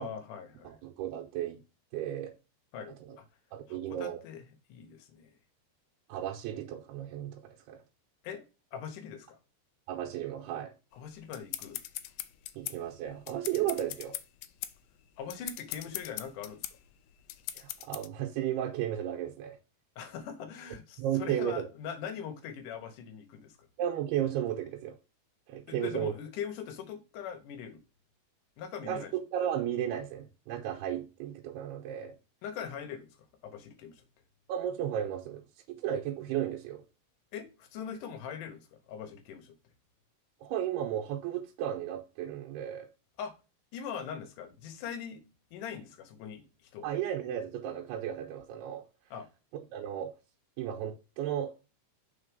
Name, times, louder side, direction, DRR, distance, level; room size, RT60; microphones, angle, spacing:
voice 1, 0.0-0.8 2.7-3.3 3.7-4.4 4.7-5.3 8.2-8.4 8.7-9.4 10.9-11.8 15.2-16.6 20.0-23.6 25.7-27.8 28.6-29.1 32.4-33.2 33.4-34.0 37.3-39.5 43.2-43.3 43.7-45.2 45.5-46.9 49.1-49.3, left 7 dB, 65° left, 2.3 m, -41 dB
voice 2, 0.6-1.6 1.9-2.3 3.0-3.2 3.5-4.2 6.1-7.8 9.9-10.7 12.5-14.2 17.6-19.6 21.0-21.7 23.8-25.0 25.5-26.1 28.8-29.1 29.3-32.2 34.5-36.8 40.4-42.9 46.8-48.8 49.5-50.1 50.6-51.8, right 10 dB, 90° right, 2.8 m, -34 dB
sound 1, 11.0-18.1, left 14 dB, 85° left, 2.0 m, -41 dB
5.9 x 4.0 x 5.2 m
omnidirectional pair, 4.6 m